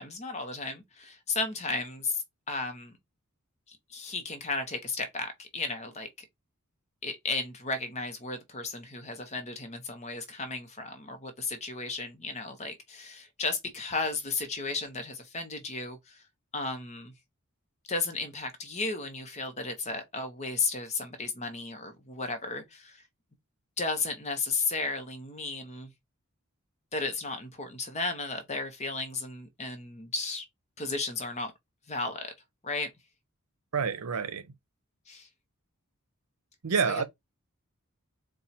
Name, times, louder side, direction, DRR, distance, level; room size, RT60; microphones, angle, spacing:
voice 1, 0.0-2.9 3.7-6.1 7.0-16.2 16.5-17.1 17.9-23.0 23.8-25.9 26.9-30.4 30.8-31.5 31.9-32.3 32.6-32.9 35.1-35.3 36.8-37.0, left 3 dB, 30° left, 0.8 m, -34 dB
voice 2, 33.7-34.4 36.6-37.0, right 6 dB, 85° right, 0.7 m, -28 dB
4.3 x 2.3 x 4.0 m
head